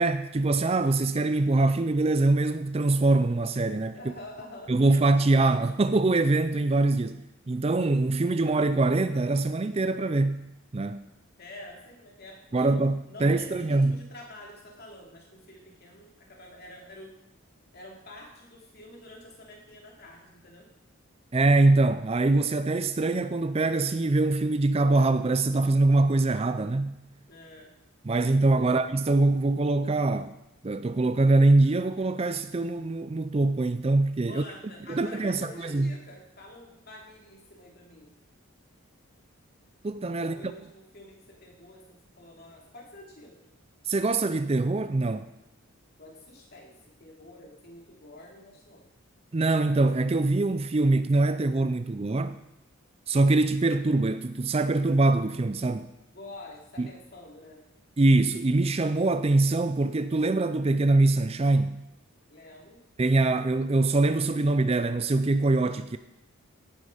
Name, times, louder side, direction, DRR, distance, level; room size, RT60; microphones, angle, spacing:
voice 1, 0.0-4.0 4.7-7.2 7.5-10.4 10.7-11.0 12.5-14.0 21.3-26.9 28.0-30.3 30.6-34.4 34.9-35.9 39.8-40.3 43.9-45.3 49.3-52.4 53.1-55.9 56.8-56.9 58.0-61.8 63.0-66.0, right 2 dB, 30° right, 0.4 m, -23 dB
voice 2, 3.9-5.3 11.4-12.7 13.1-17.2 17.7-20.7 27.3-27.7 28.6-28.8 34.3-38.1 40.2-43.5 46.0-48.9 56.1-57.6 62.3-62.8, left 1 dB, 45° left, 2.8 m, -47 dB
16.0 x 9.3 x 5.1 m
head